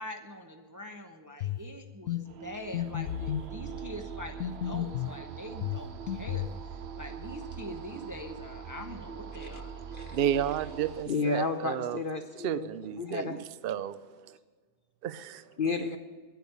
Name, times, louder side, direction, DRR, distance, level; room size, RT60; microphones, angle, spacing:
voice 1, 0.0-6.5 7.0-9.8, left 1 dB, 15° right, 4 dB, 0.7 m, -43 dB
sound 1, 1.4-1.7 2.1-2.2 2.7-3.5 4.4-5.2 5.6-6.6, left 11 dB, 70° left, 1.0 m, -32 dB
sound 2, 2.2-11.0, right 7 dB, 55° right, 0.9 m, -42 dB
voice 2, 10.1-12.0 12.4-14.4 15.0-15.5, right 10 dB, 75° right, 14 dB, 0.5 m, -32 dB
voice 3, 11.1-12.7 13.0-13.4 15.6-16.0, left 4 dB, 50° left, 7 dB, 0.7 m, -32 dB
10.5 x 9.3 x 8.3 m, 1.5 s
omnidirectional pair, 1.6 m